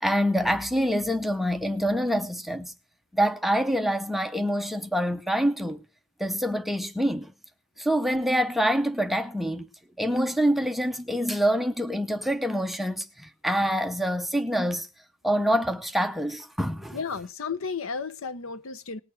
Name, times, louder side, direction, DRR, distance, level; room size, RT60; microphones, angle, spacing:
voice 1, 0.0-2.7 3.1-5.8 6.2-7.3 7.8-9.7 10.0-14.9 15.2-17.0, equal, ahead, 0.6 m, -26 dB
voice 2, 16.9-19.0, left 5 dB, 75° left, 0.7 m, -33 dB
19.5 x 6.8 x 4.4 m
head